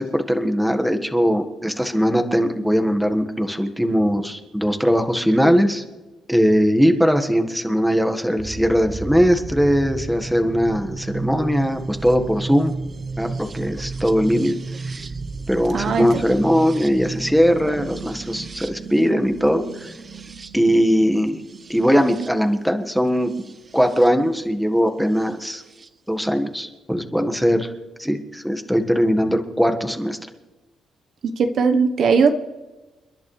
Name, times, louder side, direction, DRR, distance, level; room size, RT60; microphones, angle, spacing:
voice 1, 0.0-5.8 6.3-12.7 13.2-13.3 13.5-14.5 15.5-19.9 20.5-21.4 21.7-23.3 23.7-25.6 26.1-27.7 28.0-30.2, equal, ahead, 6 dB, 1.7 m, -20 dB
sound 1, 8.4-24.1 25.3-25.9, right 3 dB, 40° right, 0.8 m, -33 dB
voice 2, 15.7-16.2 31.2-32.3, right 5 dB, 65° right, 7 dB, 1.1 m, -18 dB
30.0 x 11.0 x 3.4 m, 1.1 s
cardioid pair, 80°, 0 cm